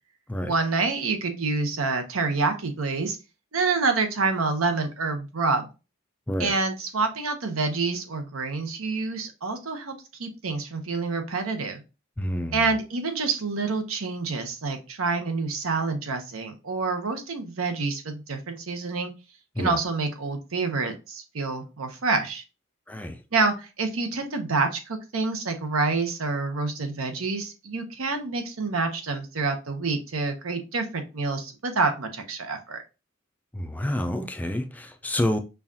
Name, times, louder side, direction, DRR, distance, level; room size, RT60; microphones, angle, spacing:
voice 1, 0.5-3.2 3.5-5.7 6.4-11.8 12.5-19.1 19.6-22.4 23.3-32.8, right 4 dB, 80° right, 0.8 m, -27 dB
voice 2, 12.2-12.6 19.6-19.7 22.9-23.2 33.5-35.4, left 1 dB, 10° left, 0.3 m, -28 dB
5.5 x 2.4 x 2.7 m
head